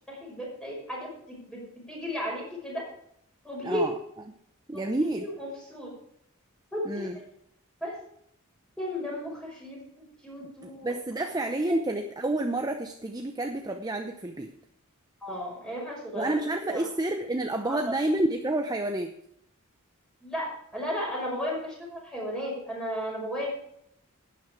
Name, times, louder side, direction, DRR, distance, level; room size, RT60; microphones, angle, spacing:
voice 1, 0.1-1.6 1.9-2.8 3.4-3.8 4.7-4.8 5.2-5.9 6.7-7.1 7.8-8.0 8.8-10.9 15.2-16.3 16.7-16.9 17.6-17.9 20.2-23.5, equal, 5° left, -3 dB, 5.1 m, -34 dB
voice 2, 3.6-3.9 4.7-5.3 6.8-7.2 10.6-14.5 16.1-19.1, right 1 dB, 20° right, 5 dB, 0.7 m, -29 dB
12.0 x 9.4 x 4.8 m, 0.73 s
head